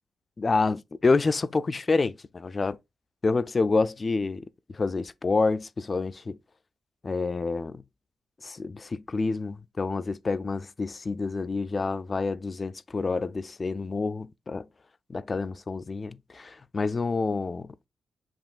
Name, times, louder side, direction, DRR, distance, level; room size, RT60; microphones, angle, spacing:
voice 1, 0.4-2.8 3.2-6.4 7.0-7.8 8.4-14.7 15.1-17.7, left 3 dB, 30° left, 0.3 m, -28 dB
7.2 x 3.0 x 2.4 m
cardioid pair, 110°, 0 cm